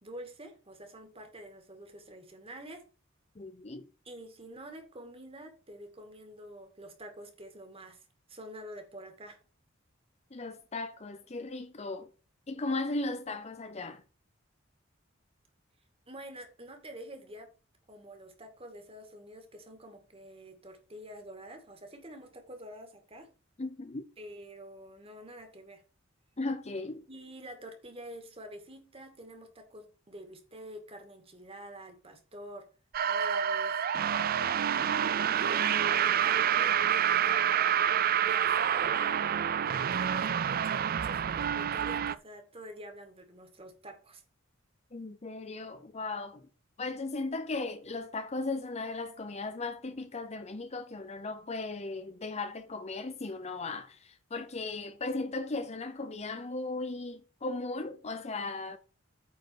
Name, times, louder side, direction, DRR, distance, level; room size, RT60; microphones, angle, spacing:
voice 1, 0.0-2.9 4.0-8.0 8.3-9.4 16.1-17.5 17.9-23.3 24.2-25.8 27.1-32.7 33.0-33.8 35.3-37.3 38.2-39.2 39.6-44.2, right 1 dB, 30° right, 2.2 m, -47 dB
voice 2, 3.4-3.8 10.3-12.1 12.5-14.0 23.6-24.0 26.4-27.0 44.9-46.5 46.8-58.8, left 3 dB, 35° left, 0.7 m, -37 dB
sound 1, 32.9-42.2, right 9 dB, 45° right, 0.4 m, -28 dB
9.2 x 4.6 x 6.4 m
head